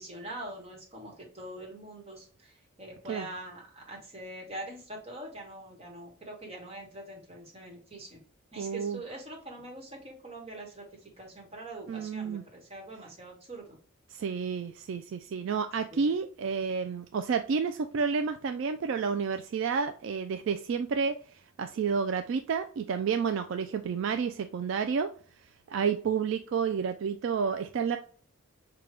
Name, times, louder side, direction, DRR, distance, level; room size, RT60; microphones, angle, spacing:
voice 1, 0.0-8.2 8.5-13.8 15.9-16.0, right 1 dB, 30° right, 1.2 m, -44 dB
voice 2, 8.6-9.0 11.9-12.4 14.1-21.2 21.6-25.1 25.7-28.0, right 6 dB, 60° right, 0.3 m, -30 dB
5.0 x 2.2 x 3.2 m
head